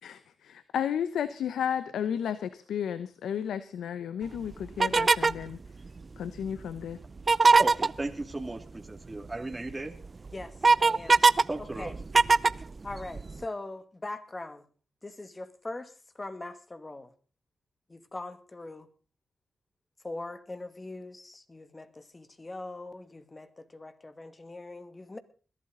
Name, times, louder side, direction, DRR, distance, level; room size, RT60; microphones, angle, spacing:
voice 1, 0.0-5.6 6.2-7.0, left 8 dB, 85° left, 0.8 m, -33 dB
sound 1, 4.8-5.4 7.2-7.9 9.5-9.6 10.0-11.4 11.8-13.3, right 4 dB, 45° right, 0.6 m, -20 dB
voice 2, 7.6-9.9 11.5-11.9, right 2 dB, 25° right, 2.3 m, -35 dB
voice 3, 10.3-11.3 11.6-12.0 12.8-14.7 15.0-17.1 17.9-18.9 20.0-25.2, left 2 dB, 30° left, 2.2 m, -41 dB
21.0 x 12.0 x 3.9 m
supercardioid pair, 50°, 0 cm